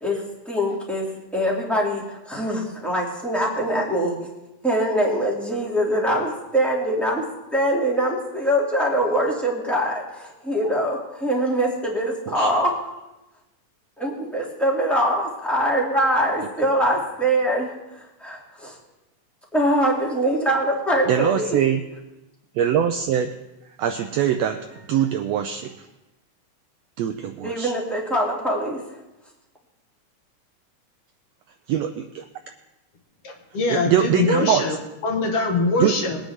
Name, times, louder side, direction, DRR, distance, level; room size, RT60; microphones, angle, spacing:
voice 1, 0.0-1.1 1.3-4.1 4.6-7.2 7.5-12.8 14.0-18.7 19.5-21.5 27.4-28.8, equal, ahead, -3 dB, 2.1 m, -23 dB
voice 2, 21.1-21.8 22.5-23.3 23.8-25.7 27.0-27.7 31.7-31.9 33.7-34.6 35.8-35.9, right 10 dB, 90° right, 6 dB, 1.5 m, -22 dB
voice 3, 33.2-34.8 35.0-36.2, left 3 dB, 55° left, 2 dB, 2.4 m, -23 dB
22.5 x 9.1 x 3.7 m, 0.98 s
omnidirectional pair, 3.6 m